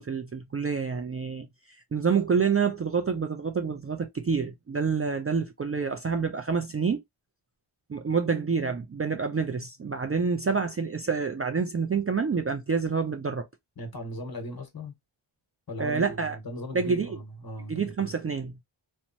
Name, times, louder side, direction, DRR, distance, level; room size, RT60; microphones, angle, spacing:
voice 1, 0.0-1.5 1.9-7.0 7.9-13.5 15.8-16.4 16.7-17.2 17.7-18.5, right 5 dB, 30° right, 0.4 m, -27 dB
voice 2, 13.8-14.9 15.7-18.1, left 1 dB, 50° left, 1.1 m, -38 dB
3.0 x 2.1 x 2.6 m
wide cardioid pair, 70°, 47 cm